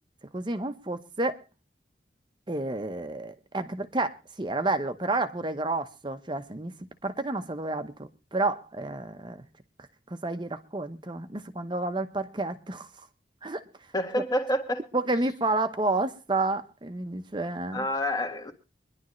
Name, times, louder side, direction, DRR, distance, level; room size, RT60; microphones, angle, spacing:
voice 1, 0.3-1.4 2.5-6.7 7.0-9.4 10.1-12.9 13.4-13.6 14.1-14.2 14.9-17.9, right 2 dB, 25° right, 0.9 m, -30 dB
voice 2, 13.9-14.8 17.7-18.5, equal, 20° left, 1.8 m, -28 dB
24.0 x 11.0 x 3.1 m
head